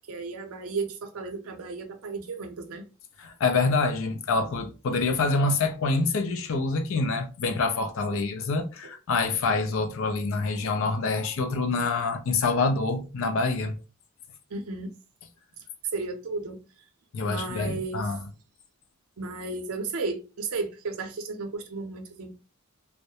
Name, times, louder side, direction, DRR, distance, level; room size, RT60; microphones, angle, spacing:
voice 1, 0.1-2.8 14.5-14.9 15.9-16.6 17.3-18.1 19.2-22.3, right 3 dB, 80° right, 0.5 m, -34 dB
voice 2, 3.2-13.8 17.1-18.2, left 3 dB, 65° left, 0.4 m, -26 dB
2.3 x 2.0 x 2.7 m
head